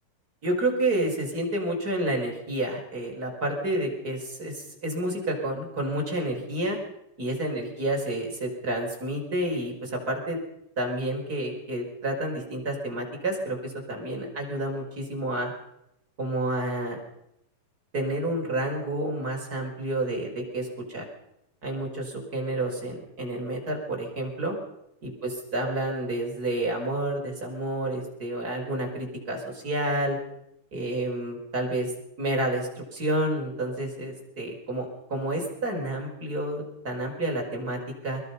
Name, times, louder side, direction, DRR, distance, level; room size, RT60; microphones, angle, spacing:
voice 1, 0.4-6.8 7.2-10.4 10.8-15.5 16.2-17.0 17.9-21.0 21.6-24.5 25.0-30.2 30.7-31.9 32.2-38.2, right 1 dB, 25° right, 1 dB, 5.6 m, -29 dB
24.0 x 22.0 x 5.5 m, 0.80 s
omnidirectional pair, 4.3 m